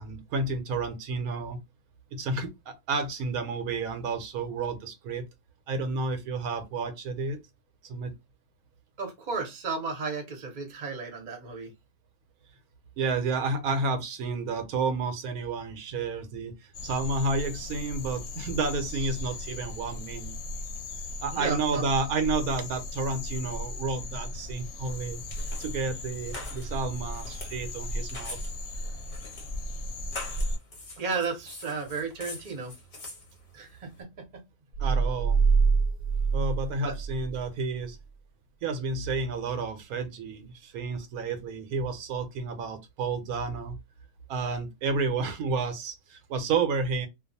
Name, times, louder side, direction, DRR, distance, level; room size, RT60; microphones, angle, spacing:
voice 1, 0.0-1.6 2.1-5.2 5.7-7.4 7.8-8.1 13.0-16.5 16.8-20.4 21.2-25.2 25.6-28.4 34.8-35.4 36.3-38.0 38.6-43.7 44.3-47.1, right 3 dB, 80° right, 1.1 m, -31 dB
voice 2, 9.0-11.7 21.3-21.8 31.0-32.7 33.5-34.3 36.8-36.9, right 4 dB, 35° right, 0.8 m, -33 dB
sound 1, 16.7-30.6, left 1 dB, 70° left, 0.9 m, -36 dB
sound 2, 24.8-34.0, left 2 dB, 40° left, 0.7 m, -45 dB
sound 3, 34.7-37.4, right 5 dB, 65° right, 0.5 m, -25 dB
2.5 x 2.3 x 2.6 m
omnidirectional pair, 1.5 m